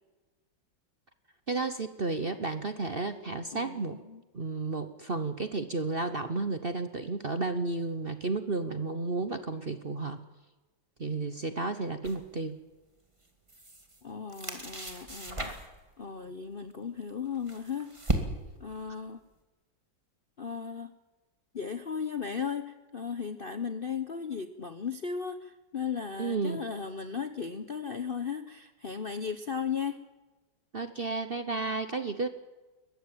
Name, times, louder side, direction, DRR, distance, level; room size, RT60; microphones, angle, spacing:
voice 1, 1.5-4.0 4.3-10.2 11.0-12.6 26.2-26.6 30.7-32.3, right 3 dB, 40° right, 10 dB, 0.9 m, -32 dB
voice 2, 3.5-4.2 14.0-15.5 16.0-18.0 18.6-19.2 20.4-20.9 21.5-30.0, left 6 dB, 45° left, 9 dB, 0.7 m, -36 dB
sound 1, 12.0-12.3 13.2-14.0 14.3-15.8 17.0-18.7, right 1 dB, 15° right, 2.2 m, -35 dB
21.5 x 15.0 x 8.9 m, 1.2 s
omnidirectional pair, 2.1 m